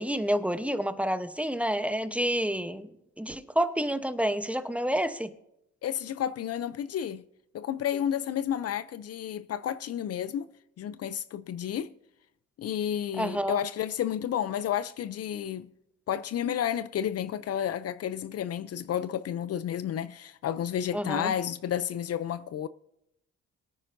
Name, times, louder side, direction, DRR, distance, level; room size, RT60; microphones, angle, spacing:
voice 1, 0.0-2.9 3.2-5.3 13.2-13.6 20.9-21.3, equal, 5° right, 0.9 m, -29 dB
voice 2, 5.8-7.2 7.5-11.9 12.6-15.7 16.1-22.7, left 10 dB, 55° left, 0.5 m, -31 dB
22.5 x 9.8 x 2.6 m
cardioid pair, 90°, 30 cm